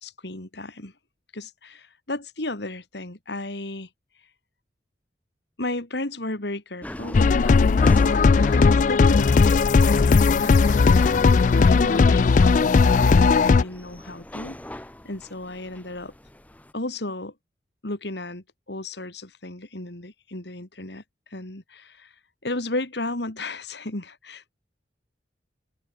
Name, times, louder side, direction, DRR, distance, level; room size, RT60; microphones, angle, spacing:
voice 1, 0.0-0.9 1.3-3.9 5.6-10.8 11.2-14.6 15.0-16.1 16.7-17.3 17.8-21.0 21.3-22.1 22.4-24.5, left 2 dB, 65° left, 2.6 m, -34 dB
sound 1, 6.8-16.7, left 1 dB, 10° left, 0.8 m, -41 dB
sound 2, 7.1-13.6, left 4 dB, 45° left, 0.3 m, -17 dB
open air
head